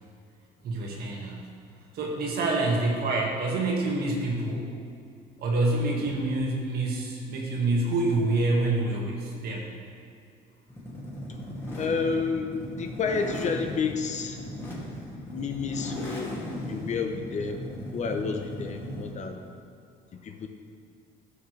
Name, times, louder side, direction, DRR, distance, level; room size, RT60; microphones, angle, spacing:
voice 1, 0.6-1.5 1.9-4.7 5.4-9.7, right 2 dB, 70° right, -1 dB, 1.8 m, -27 dB
sound 1, 10.7-19.3, equal, 15° left, 2.3 m, -37 dB
voice 2, 11.8-14.4 15.3-16.3 16.7-17.6 17.9-19.4 20.1-20.5, left 5 dB, 45° left, 5 dB, 0.8 m, -30 dB
13.5 x 5.9 x 3.3 m, 2.4 s
cardioid pair, 110°, 17 cm